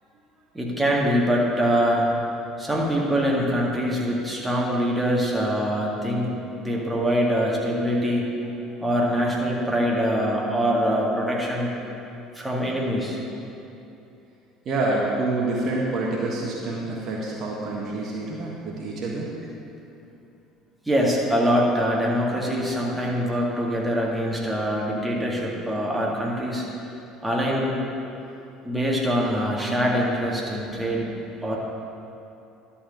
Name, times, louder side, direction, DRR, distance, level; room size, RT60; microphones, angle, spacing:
voice 1, 0.5-2.1 2.6-8.3 8.8-11.7 12.4-13.2 20.9-26.7 27.2-27.8 28.6-31.1 31.4-31.6, equal, 10° right, -3 dB, 2.0 m, -24 dB
voice 2, 14.6-19.3, right 2 dB, 50° right, -3 dB, 1.3 m, -27 dB
11.5 x 4.3 x 6.7 m, 2.8 s
hypercardioid pair, 65°, 0 cm